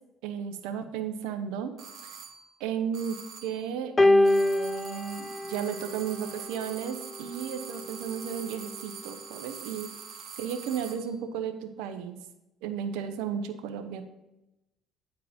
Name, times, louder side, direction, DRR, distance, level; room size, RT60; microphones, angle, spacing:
voice 1, 0.2-1.7 2.0-2.2 2.6-9.9 10.4-12.2 12.6-14.0, right 8 dB, 80° right, 8 dB, 0.8 m, -34 dB
sound 1, 1.8-2.5 2.9-3.7 4.2-11.1, right 7 dB, 60° right, 1.3 m, -44 dB
sound 2, 4.0-6.5 7.5-7.6, left 2 dB, 20° left, 0.4 m, -24 dB
9.1 x 4.6 x 5.1 m, 0.92 s
supercardioid pair, 75°, 0 cm